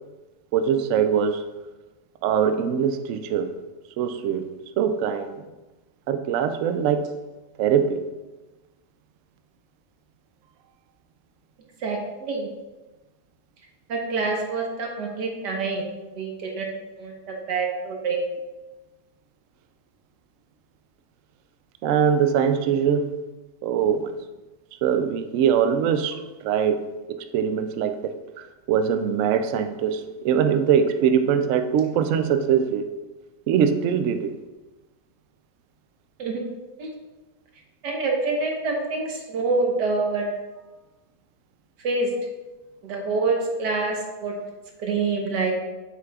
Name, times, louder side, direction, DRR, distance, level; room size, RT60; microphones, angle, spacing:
voice 1, 0.5-1.4 2.2-3.5 4.0-4.4 4.8-5.4 6.1-7.1 7.6-8.0 21.8-23.1 23.6-24.1 24.8-28.1 28.7-32.9 33.5-34.3 39.7-39.8, right 8 dB, 70° right, 8 dB, 0.7 m, -22 dB
voice 2, 11.8-12.5 13.9-15.8 16.2-16.7 17.0-18.2 36.2-36.4 36.8-36.9 37.8-40.3 41.8-42.1 42.8-44.3 44.8-45.5, right 3 dB, 90° right, 0 dB, 1.8 m, -26 dB
7.5 x 6.0 x 2.4 m, 1.1 s
omnidirectional pair, 1.8 m